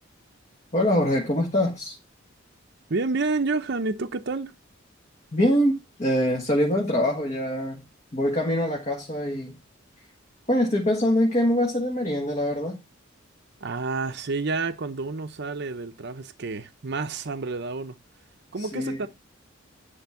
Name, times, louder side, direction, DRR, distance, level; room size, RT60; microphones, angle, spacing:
voice 1, 0.7-2.0 5.3-7.8 8.1-9.6 10.5-12.8 18.6-19.0, left 1 dB, 35° left, 1.5 m, -24 dB
voice 2, 2.9-4.5 13.6-18.0 18.5-19.1, right 3 dB, 55° right, 0.7 m, -29 dB
10.5 x 3.5 x 7.2 m
head